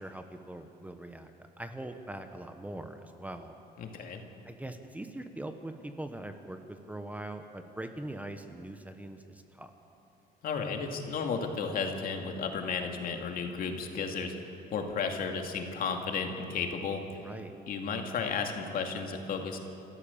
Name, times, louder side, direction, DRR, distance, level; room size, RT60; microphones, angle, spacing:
voice 1, 0.0-3.5 4.4-9.7 17.2-17.5, right 1 dB, 10° right, 7 dB, 1.1 m, -42 dB
voice 2, 3.8-4.2 10.4-14.3 14.7-17.0 17.7-19.6, left 5 dB, 60° left, 3 dB, 2.4 m, -33 dB
27.5 x 14.0 x 7.2 m, 2.9 s
cardioid pair, 110°, 17 cm